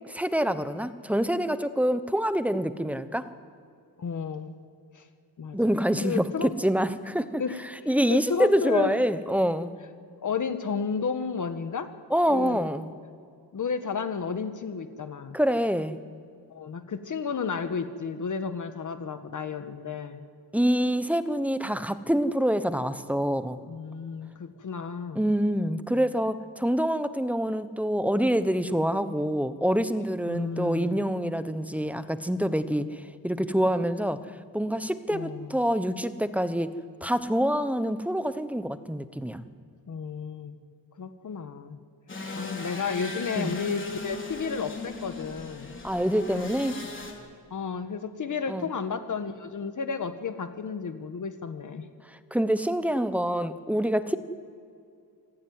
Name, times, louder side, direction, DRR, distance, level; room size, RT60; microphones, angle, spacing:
voice 1, 0.1-3.3 5.5-7.4 7.9-9.7 12.1-12.9 15.3-16.0 20.5-23.6 25.1-34.2 34.5-36.7 37.0-39.4 43.3-43.6 45.8-46.8 48.5-48.6 52.3-54.2, equal, 5° right, 12 dB, 1.0 m, -26 dB
voice 2, 4.0-4.5 4.9-5.0 5.4-5.6 6.0-6.5 7.4-8.9 10.2-11.9 12.3-12.7 13.5-15.4 16.5-20.2 23.7-25.2 30.3-31.0 35.1-35.6 39.9-40.6 41.0-41.8 42.3-45.7 46.3-46.5 47.5-51.9, left 5 dB, 50° left, 9 dB, 1.5 m, -32 dB
sound 1, 42.1-47.1, left 2 dB, 30° left, 3.9 m, -38 dB
26.0 x 17.0 x 9.6 m, 2.5 s
wide cardioid pair, 135°, 40 cm